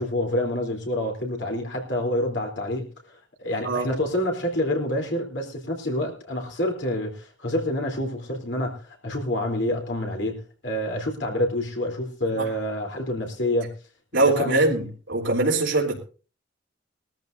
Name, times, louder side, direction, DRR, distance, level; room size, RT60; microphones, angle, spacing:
voice 1, 0.0-13.7 14.4-14.8, left 1 dB, 65° left, 3.6 m, -27 dB
voice 2, 14.1-16.0, right 2 dB, 70° right, 3.4 m, -22 dB
20.5 x 14.0 x 2.7 m
head